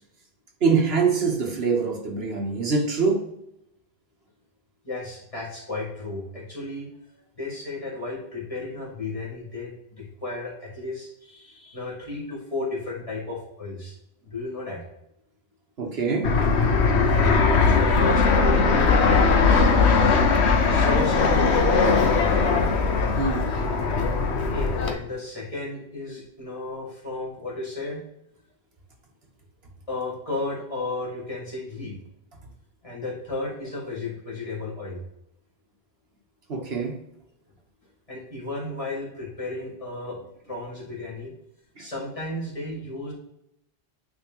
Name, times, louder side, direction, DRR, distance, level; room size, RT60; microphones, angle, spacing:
voice 1, 0.6-3.2 15.8-16.3 23.2-23.5 36.5-37.0 41.8-41.9, right 4 dB, 65° right, 1 dB, 1.4 m, -24 dB
voice 2, 4.8-6.9 7.4-13.9 14.3-14.8 17.6-22.5 24.4-28.0 29.9-32.0 32.8-35.0 38.1-40.2 40.5-41.3 41.8-43.1, left 2 dB, 30° left, -5 dB, 2.3 m, -33 dB
Fixed-wing aircraft airplane, 16.2-24.9, left 4 dB, 80° left, 1.1 m, -20 dB
9.1 x 3.5 x 3.0 m, 0.83 s
omnidirectional pair, 1.1 m